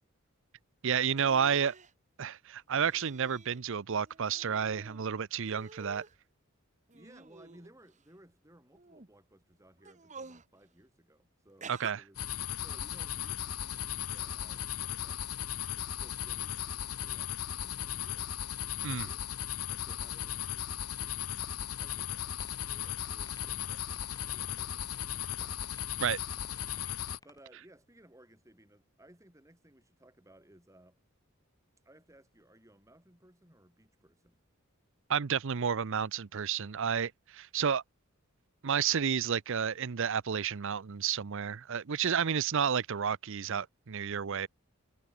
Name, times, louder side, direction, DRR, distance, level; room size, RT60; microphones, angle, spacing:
voice 1, 0.8-1.7 2.2-6.0 11.7-12.0 18.8-19.1 26.0-26.2 35.1-37.8 38.6-44.5, right 7 dB, 60° right, 0.6 m, -31 dB
sound 1, 1.1-1.9 2.9-3.6 3.9-5.0 5.4-6.2 6.9-8.0 8.7-9.1 9.8-10.5 11.6-11.9, right 4 dB, 35° right, 1.7 m, -50 dB
voice 2, 6.9-15.3 15.7-19.3 19.6-22.4 22.7-25.6 27.2-31.0 31.8-34.4, right 1 dB, 15° right, 5.1 m, -60 dB
sound 2, 12.1-27.2, left 10 dB, 85° left, 1.1 m, -37 dB
sound 3, 21.4-21.6 21.9-22.0 22.4-23.7 23.9-24.7 24.9-27.4, left 2 dB, 15° left, 3.1 m, -54 dB
head